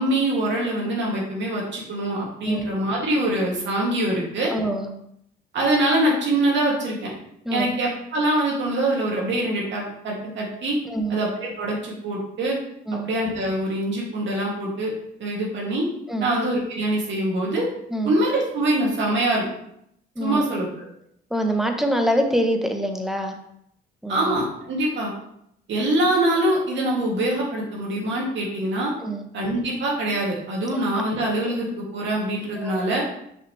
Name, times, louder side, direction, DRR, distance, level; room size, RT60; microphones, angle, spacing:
voice 1, 0.0-4.5 5.5-7.1 7.5-10.8 11.1-12.6 13.1-14.9 15.2-15.9 16.2-17.7 18.0-19.5 20.2-20.9 24.1-25.1 25.7-28.9 29.3-33.0, right 1 dB, 70° right, -3 dB, 2.4 m, -24 dB
voice 2, 4.5-4.9 7.4-7.7 10.8-11.2 12.9-13.1 16.1-16.3 17.9-18.1 20.2-20.4 21.3-23.4 24.0-24.4 29.0-29.2 32.6-32.8, right 1 dB, ahead, 4 dB, 0.9 m, -25 dB
6.1 x 5.7 x 3.2 m, 0.74 s
cardioid pair, 90°, 20 cm